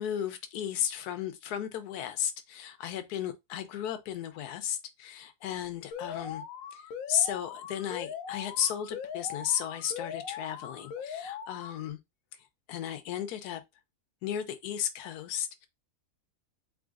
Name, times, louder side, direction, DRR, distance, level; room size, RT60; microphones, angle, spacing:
voice 1, 0.0-6.4 6.7-6.8 7.1-12.0 12.7-13.6 14.2-15.7, left 9 dB, 90° left, 1.2 m, -34 dB
Alarm, 5.9-11.9, left 7 dB, 70° left, 1.0 m, -40 dB
3.8 x 3.6 x 2.4 m
omnidirectional pair, 1.6 m